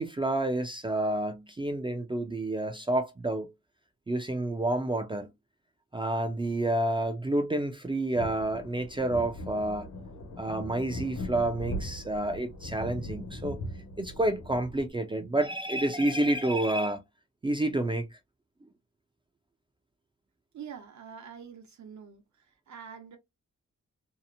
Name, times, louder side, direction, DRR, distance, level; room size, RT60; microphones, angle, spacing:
voice 1, 0.0-3.5 4.1-5.3 5.9-9.9 10.4-13.6 14.0-17.0 17.4-18.1, right 1 dB, 15° right, 0.3 m, -29 dB
sound 1, 8.1-14.9, left 1 dB, 80° left, 1.1 m, -40 dB
voice 2, 20.5-22.2 22.7-23.2, right 7 dB, 70° right, 0.8 m, -45 dB
2.8 x 2.0 x 2.5 m
wide cardioid pair, 155°, 30 cm